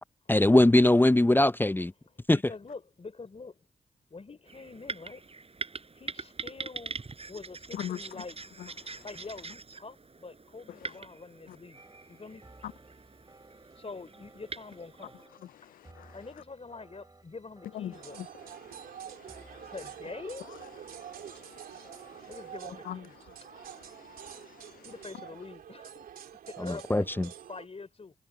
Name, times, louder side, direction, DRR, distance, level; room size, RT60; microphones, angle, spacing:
voice 1, 0.3-1.9 2.3-2.4 26.6-27.3, left 1 dB, 15° left, 0.6 m, -21 dB
voice 2, 2.3-3.6 4.1-5.2 6.0-6.9 7.3-8.4 9.0-11.8 12.1-12.4 13.8-15.1 15.6-15.8 16.0-18.2 19.7-20.4 22.3-23.3 24.8-26.1 26.5-27.0 27.5-28.1, left 4 dB, 40° left, 3.7 m, -45 dB
sound 1, 4.5-15.3, right 4 dB, 40° right, 4.6 m, -43 dB
sound 2, 11.7-22.2, right 2 dB, 25° right, 4.4 m, -58 dB
voice 3, 15.4-16.1 17.7-18.3 18.6-19.7 20.9-22.3 22.9-23.0 23.5-24.9, left 11 dB, 70° left, 0.4 m, -43 dB
sound 3, 17.9-27.7, right 9 dB, 80° right, 3.3 m, -47 dB
supercardioid pair, 40°, 15 cm